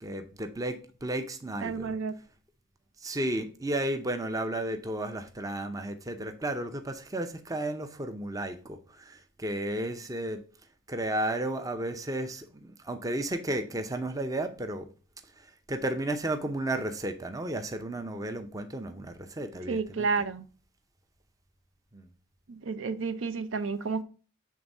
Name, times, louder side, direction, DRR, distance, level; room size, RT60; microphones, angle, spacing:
voice 1, 0.0-2.0 3.0-10.4 10.9-14.9 15.4-20.1 21.9-22.1, right 1 dB, 15° right, 0.6 m, -33 dB
voice 2, 1.6-2.1 19.7-20.4 22.5-24.0, right 4 dB, 65° right, 0.5 m, -31 dB
7.5 x 3.5 x 5.3 m
head